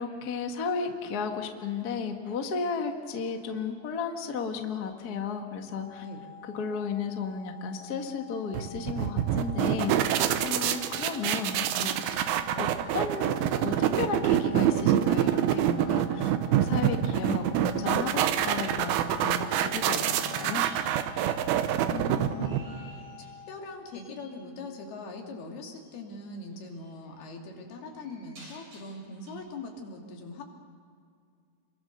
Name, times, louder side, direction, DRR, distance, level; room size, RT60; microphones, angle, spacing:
voice 1, 0.0-6.0 6.4-12.7 12.9-20.7, left 5 dB, 45° left, 4 dB, 1.2 m, -34 dB
sound 1, 5.7-23.8, left 7 dB, 15° left, 1.9 m, -49 dB
sound 2, 8.5-22.9, right 10 dB, 80° right, 2.8 m, -26 dB
sound 3, 20.6-23.6 23.9-24.3 25.8-26.0 26.5-29.3, right 1 dB, 60° right, 8.5 m, -53 dB
voice 2, 21.9-22.6 23.5-30.4, left 3 dB, 80° left, 1 dB, 4.6 m, -41 dB
28.0 x 22.5 x 6.8 m, 2.3 s
omnidirectional pair, 4.4 m